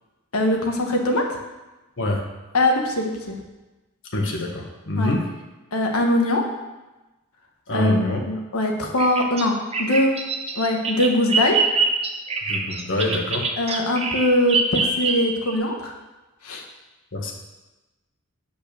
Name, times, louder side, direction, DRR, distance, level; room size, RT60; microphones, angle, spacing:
voice 1, 0.3-1.3 2.5-3.4 5.0-5.1 5.7-6.4 7.7-10.1 10.5-11.6 13.6-15.9 16.4-16.6, left 1 dB, 80° left, 1 dB, 1.4 m, -22 dB
voice 2, 4.1-5.2 7.7-8.2 12.5-13.5 17.1-17.3, left 2 dB, 60° left, 0 dB, 1.5 m, -25 dB
Bird vocalization bird call bird song, 9.0-15.5, right 4 dB, 30° right, 0.9 m, -24 dB
8.5 x 5.5 x 6.8 m, 1.1 s
head